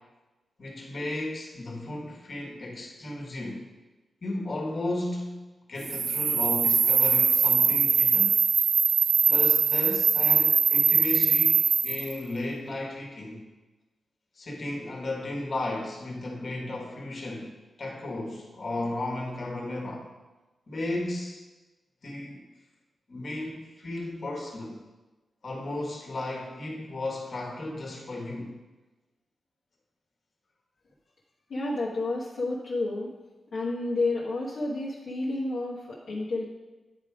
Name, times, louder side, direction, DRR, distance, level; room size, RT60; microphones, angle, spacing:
voice 1, 0.6-3.6 4.2-8.4 9.3-13.5 14.3-17.5 17.8-20.1 20.7-21.4 22.0-22.5 23.1-24.8 25.4-28.5, left 2 dB, 55° left, -1 dB, 1.5 m, -34 dB
sound 1, 5.8-12.1, right 6 dB, 80° right, 0.5 m, -22 dB
voice 2, 31.5-33.1 33.5-36.5, left 2 dB, 75° left, -6 dB, 1.1 m, -30 dB
9.7 x 3.5 x 4.8 m, 1.2 s
cardioid pair, 85°, 0 cm